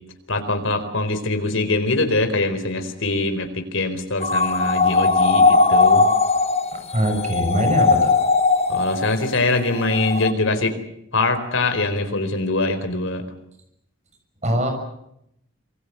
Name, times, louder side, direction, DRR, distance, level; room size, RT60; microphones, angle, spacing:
voice 1, 0.3-6.1 8.7-10.8 11.1-13.2, left 2 dB, 70° left, 7 dB, 4.3 m, -23 dB
sound 1, 4.2-9.3 9.8-10.3, left 3 dB, 30° left, 1.4 m, -18 dB
voice 2, 6.7-8.1 14.4-14.7, equal, 35° right, 5 dB, 6.6 m, -22 dB
26.5 x 24.0 x 6.9 m, 0.78 s
head